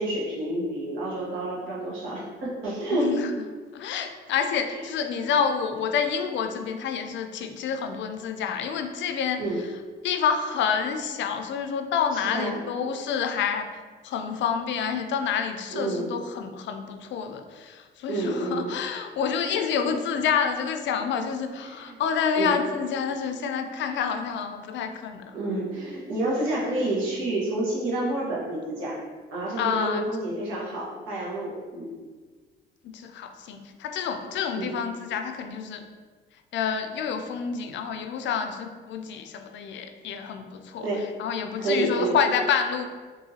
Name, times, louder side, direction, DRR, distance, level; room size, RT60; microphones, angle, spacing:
voice 1, 0.0-3.1 9.4-9.6 12.1-12.6 15.7-16.1 18.1-18.7 19.4-19.6 21.6-22.0 22.3-22.5 25.3-29.0 29.3-31.9 34.5-34.7 40.8-41.0 41.6-42.2, right 2 dB, 90° right, -6 dB, 1.2 m, -29 dB
voice 2, 2.9-3.3 3.7-9.7 10.0-13.7 14.0-25.4 29.6-30.1 32.8-35.8 36.5-40.9 41.2-42.8, left 7 dB, 70° left, 6 dB, 0.4 m, -28 dB
3.8 x 2.6 x 2.8 m, 1.5 s
cardioid pair, 90°, 20 cm